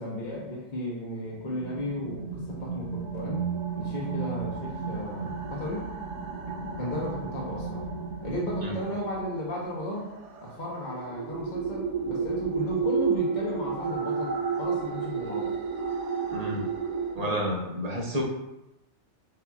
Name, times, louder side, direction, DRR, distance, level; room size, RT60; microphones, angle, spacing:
voice 1, 0.0-3.4 3.8-5.9 6.8-7.9 8.2-10.1 10.4-15.5, left 1 dB, 40° left, -4 dB, 1.0 m, -34 dB
sound 1, 1.4-17.2, right 5 dB, 85° right, 1.0 m, -32 dB
voice 2, 16.3-16.7 17.1-18.2, equal, 40° right, -1 dB, 0.8 m, -30 dB
7.9 x 2.8 x 2.4 m, 0.94 s
omnidirectional pair, 1.2 m